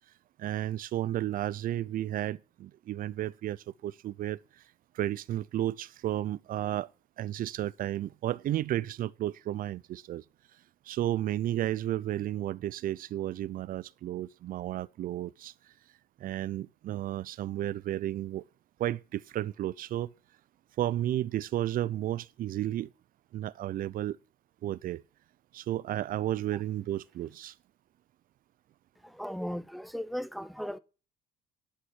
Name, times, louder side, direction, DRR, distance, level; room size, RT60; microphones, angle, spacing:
voice 1, 0.4-4.6 4.9-6.9 7.2-10.2 10.9-15.5 16.2-18.4 18.8-20.1 20.8-22.9 23.3-24.2 24.6-25.0 25.5-27.5, right 13 dB, 55° right, 0.5 m, -33 dB
voice 2, 29.0-30.8, equal, ahead, 0.7 m, -36 dB
11.5 x 6.2 x 6.1 m
cardioid pair, 110°, 17 cm